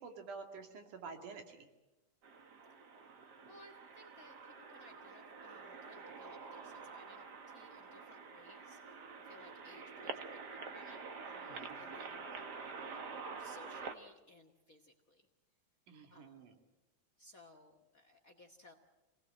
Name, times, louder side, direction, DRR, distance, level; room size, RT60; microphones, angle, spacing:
voice 1, 0.0-1.7 11.5-12.0 15.9-16.6, right 4 dB, 80° right, 4 dB, 4.0 m, -50 dB
sound 1, 2.2-13.9, right 5 dB, 45° right, 1.5 m, -48 dB
voice 2, 3.5-9.0 9.2-15.3 16.1-16.5 17.2-18.7, left 1 dB, 35° left, 6 dB, 1.5 m, -60 dB
27.5 x 19.0 x 7.7 m, 1.1 s
omnidirectional pair, 3.5 m